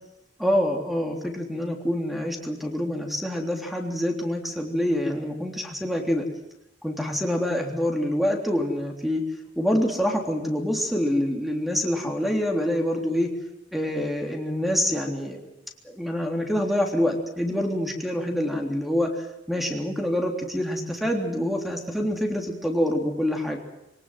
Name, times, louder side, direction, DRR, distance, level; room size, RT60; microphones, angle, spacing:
voice 1, 0.4-6.2 6.8-9.2 9.6-13.3 13.7-15.4 15.8-23.6, equal, ahead, 2 dB, 3.4 m, -26 dB
23.5 x 18.5 x 7.8 m, 0.91 s
head